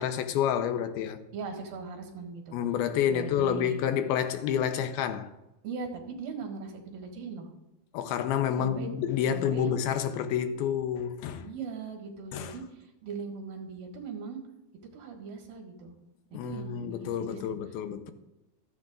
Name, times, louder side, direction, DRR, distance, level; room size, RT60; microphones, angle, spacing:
voice 1, 0.0-1.2 2.5-5.3 7.9-11.5 12.3-12.6 16.3-18.1, left 9 dB, 85° left, 2.6 m, -29 dB
voice 2, 1.3-2.6 3.1-3.8 5.6-7.5 8.6-8.9 9.3-9.7 11.4-12.6 13.0-14.4 14.9-16.0 16.3-17.6, right 5 dB, 70° right, 3.4 m, -39 dB
25.5 x 8.6 x 2.5 m
omnidirectional pair, 4.4 m